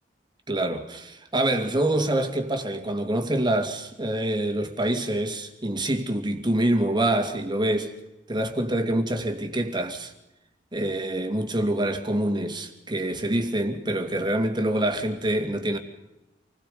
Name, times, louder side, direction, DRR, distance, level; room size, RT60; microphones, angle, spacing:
voice 1, 0.5-7.9 8.3-10.1 10.7-15.8, right 1 dB, 25° right, 2.5 m, -26 dB
28.0 x 21.0 x 5.1 m
head